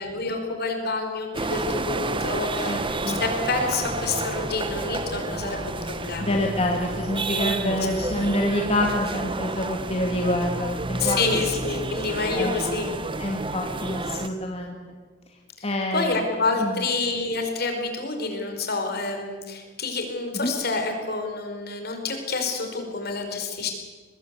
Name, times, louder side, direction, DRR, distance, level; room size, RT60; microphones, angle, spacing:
voice 1, 0.0-2.8 3.2-6.4 7.5-7.6 11.0-12.9 15.6-15.7 15.9-23.7, left 3 dB, 55° left, 4 dB, 4.9 m, -28 dB
sound 1, 1.3-14.3, right 2 dB, 25° right, 1.2 m, -30 dB
voice 2, 6.2-11.5 12.3-12.6 13.2-14.8 15.6-16.2 16.6-16.8 20.3-20.5, left 1 dB, 35° left, 1 dB, 2.2 m, -27 dB
23.0 x 20.5 x 8.3 m, 1.4 s
head